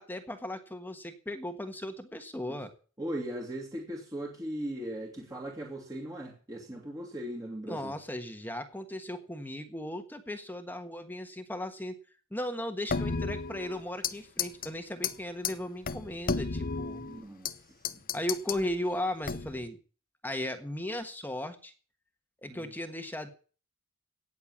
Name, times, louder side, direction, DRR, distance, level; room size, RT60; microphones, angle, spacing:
voice 1, 0.0-2.7 7.7-11.9 12.3-17.0 18.1-19.8 20.2-21.7 22.4-23.3, left 1 dB, 10° left, 1.5 m, -36 dB
voice 2, 3.0-7.9 17.0-18.0 22.5-22.7, right 1 dB, 15° right, 2.3 m, -39 dB
sound 1, 12.9-14.1 14.4-14.7 15.0-15.1 15.4-15.5 15.9-17.5 17.8-18.6 19.2-19.7, left 5 dB, 40° left, 0.8 m, -33 dB
18.0 x 6.9 x 8.6 m
head